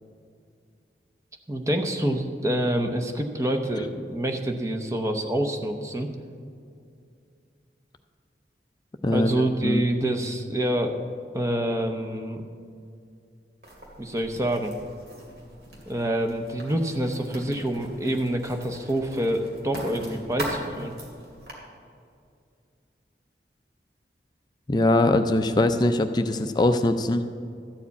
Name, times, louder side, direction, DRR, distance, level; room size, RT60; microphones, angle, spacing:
voice 1, 1.5-6.1 9.1-10.9 11.3-12.4 14.0-14.7 15.9-20.9, right 1 dB, 15° right, 4 dB, 0.7 m, -27 dB
voice 2, 9.0-9.9 24.7-27.2, left 2 dB, 25° left, 8 dB, 0.4 m, -22 dB
Writing, 13.6-21.5, right 1 dB, 60° right, 2.3 m, -40 dB
13.0 x 4.9 x 8.2 m, 2.4 s
head